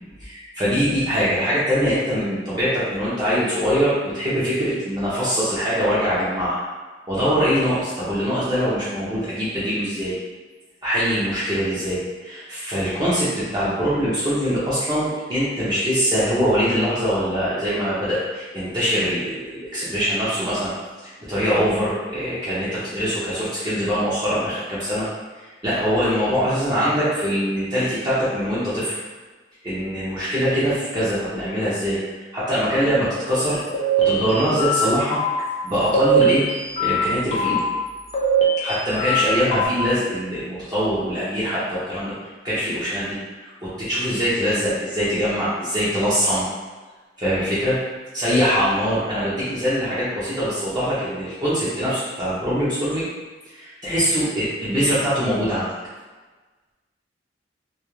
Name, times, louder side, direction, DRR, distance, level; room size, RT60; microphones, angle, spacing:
voice 1, 0.2-6.6 7.1-10.2 10.8-20.7 21.0-25.1 25.6-28.9 29.6-32.0 32.3-33.6 34.0-35.2 35.6-36.5 36.8-37.6 38.6-42.1 42.4-46.5 47.2-47.8 48.1-53.1 53.4-55.7, equal, 25° right, -11 dB, 0.5 m, -23 dB
sound 1, 33.7-34.8 35.1-35.4 35.9-37.0 37.3-37.6 38.1-39.2 39.5-39.7, right 3 dB, 35° left, 0.5 m, -20 dB
2.2 x 2.0 x 3.0 m, 1.3 s
head